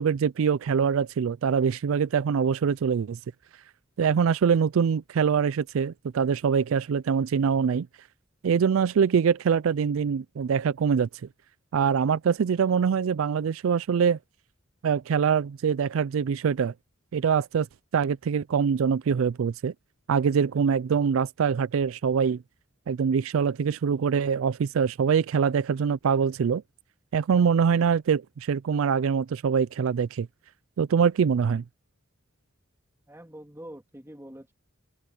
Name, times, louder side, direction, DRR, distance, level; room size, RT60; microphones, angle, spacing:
voice 1, 0.0-3.2 4.0-7.9 8.4-11.1 11.7-14.2 14.8-16.7 17.1-17.7 17.9-19.7 20.1-22.4 22.9-26.6 27.1-30.3 30.8-31.6, right 6 dB, 75° right, 0.4 m, -24 dB
voice 2, 33.1-34.5, right 1 dB, 10° right, 3.0 m, -44 dB
head